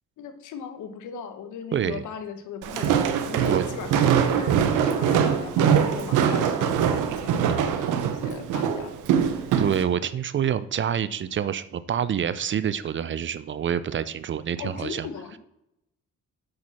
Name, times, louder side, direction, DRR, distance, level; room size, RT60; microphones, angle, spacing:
voice 1, 0.2-8.9 14.6-15.4, left 7 dB, 80° left, 8 dB, 1.1 m, -38 dB
voice 2, 1.7-2.0 3.5-3.6 7.5-7.6 9.6-15.1, right 9 dB, 40° right, 15 dB, 0.5 m, -27 dB
Walk footsteps, 2.6-9.8, right 8 dB, 90° right, 0.8 m, -23 dB
7.7 x 6.0 x 4.2 m, 0.82 s
cardioid pair, 90°, 30 cm